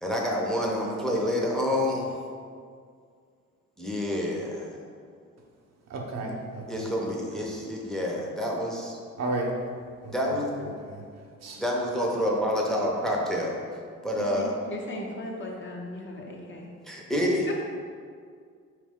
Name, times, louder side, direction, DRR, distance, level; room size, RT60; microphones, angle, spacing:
voice 1, 0.0-2.1 3.8-4.8 6.7-9.0 10.1-10.7 11.6-13.6 14.0-14.5 16.8-17.5, left 1 dB, ahead, -3 dB, 0.7 m, -28 dB
voice 2, 5.9-6.9 9.2-9.5 10.0-10.1 10.9-11.0 11.4-11.6, right 2 dB, 60° right, 0 dB, 0.8 m, -32 dB
voice 3, 14.2-16.7 17.5-17.6, left 1 dB, 40° left, -1 dB, 0.7 m, -37 dB
4.5 x 3.2 x 3.6 m, 2.1 s
cardioid pair, 110°, 30 cm